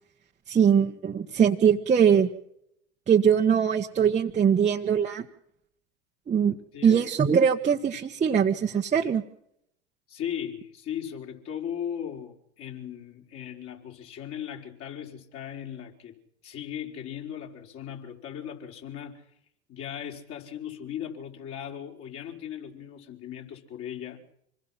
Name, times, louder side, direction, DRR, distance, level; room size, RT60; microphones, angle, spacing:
voice 1, 0.5-2.3 3.1-5.2 6.3-6.6 6.8-9.2, right 7 dB, 20° right, 1.5 m, -22 dB
voice 2, 6.7-7.1 10.1-16.2 16.4-19.2 19.7-24.3, left 9 dB, 40° left, 5.2 m, -37 dB
27.0 x 21.0 x 5.9 m
figure-of-eight pair, 90°, 35 cm